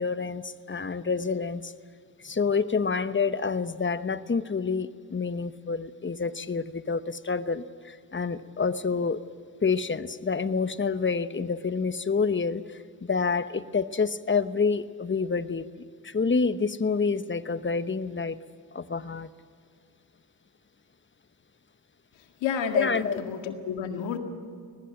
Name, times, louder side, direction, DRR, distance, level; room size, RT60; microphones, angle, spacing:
voice 1, 0.0-1.7 2.2-9.2 9.6-15.7 16.0-18.4 18.7-19.3 22.8-23.2, left 5 dB, 25° left, 1.0 m, -28 dB
voice 2, 22.4-24.2, left 7 dB, 85° left, 2.0 m, -30 dB
22.5 x 19.0 x 8.8 m
supercardioid pair, 50°, 44 cm